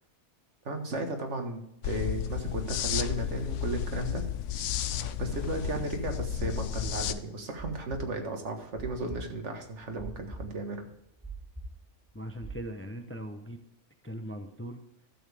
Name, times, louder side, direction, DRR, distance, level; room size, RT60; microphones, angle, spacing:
voice 1, 0.7-4.3 5.2-10.8, right 2 dB, 75° right, 4 dB, 1.8 m, -35 dB
sound 1, 1.8-7.1, left 9 dB, 85° left, 0.9 m, -32 dB
sound 2, 5.3-12.6, right 2 dB, 15° right, 2.6 m, -43 dB
voice 2, 12.1-13.6 14.0-14.8, equal, 15° left, 6 dB, 0.6 m, -39 dB
12.5 x 7.1 x 3.5 m, 0.79 s
omnidirectional pair, 1.2 m